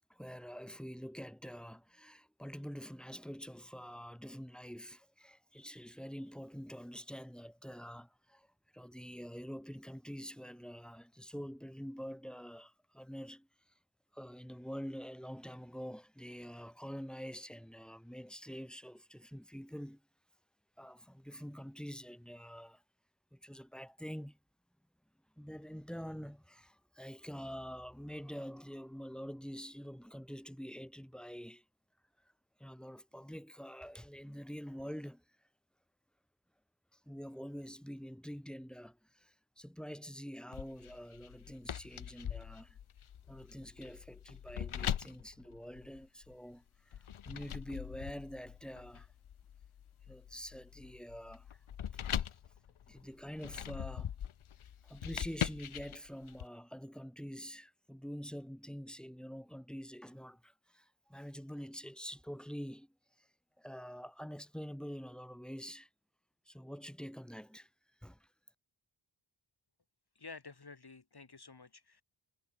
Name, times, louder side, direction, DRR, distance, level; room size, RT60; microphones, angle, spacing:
voice 1, 0.1-8.5 8.7-13.5 14.1-20.0 20.8-22.8 23.3-24.4 25.4-31.6 32.6-35.2 36.9-42.8 43.3-49.1 50.1-51.6 51.9-52.3 52.9-54.1 54.8-63.3 63.6-65.9 66.5-67.7 68.0-68.3, equal, ahead, 3.3 m, -46 dB
sound 1, 40.5-46.3 46.9-56.5, left 9 dB, 90° left, 1.1 m, -42 dB
voice 2, 70.2-72.0, left 4 dB, 50° left, 6.7 m, -51 dB
wide cardioid pair, 70°, 48 cm